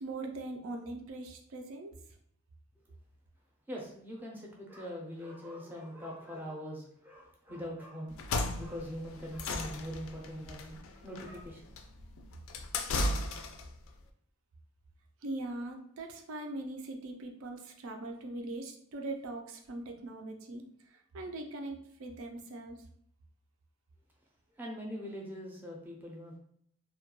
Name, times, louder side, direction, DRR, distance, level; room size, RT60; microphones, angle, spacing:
voice 1, 0.0-2.0 15.2-20.7 20.9-22.8, right 2 dB, 80° right, 4 dB, 0.4 m, -41 dB
voice 2, 3.7-8.2 8.5-11.7 24.5-26.4, equal, 10° right, -2 dB, 0.4 m, -42 dB
sound 1, 8.1-13.8, left 2 dB, 75° left, 0.3 m, -35 dB
2.2 x 2.1 x 2.9 m, 0.68 s
head